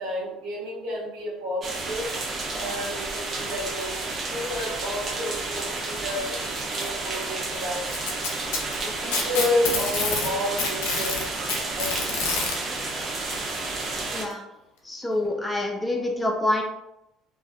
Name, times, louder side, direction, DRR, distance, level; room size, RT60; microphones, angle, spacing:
voice 1, 0.0-2.1 2.6-8.3 8.8-11.2 11.7-12.2, left 1 dB, 65° right, -4 dB, 0.9 m, -31 dB
sound 1, 1.6-14.2, right 3 dB, 40° right, 0.6 m, -31 dB
Packing tape duct tape, 7.9-10.3 10.6-12.6 13.7-13.8 14.3-14.4 15.3-15.4, left 4 dB, 75° left, 0.5 m, -27 dB
voice 2, 14.9-16.6, left 1 dB, 15° left, 1 dB, 0.5 m, -26 dB
2.4 x 2.3 x 2.3 m, 0.87 s
hypercardioid pair, 65°, 0 cm